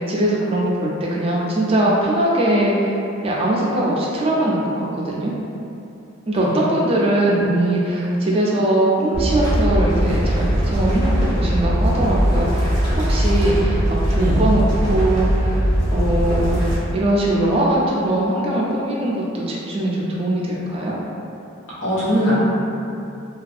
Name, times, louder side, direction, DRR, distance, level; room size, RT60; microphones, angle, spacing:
voice 1, 0.1-2.9 3.2-5.3 6.3-15.6 15.9-16.6 16.9-21.0, right 1 dB, 30° right, -4 dB, 0.3 m, -21 dB
sound 1, 9.1-16.8, equal, 20° left, 0.6 m, -20 dB
voice 2, 21.8-22.4, equal, 90° left, -11 dB, 1.0 m, -20 dB
2.6 x 2.3 x 2.4 m, 2.7 s
head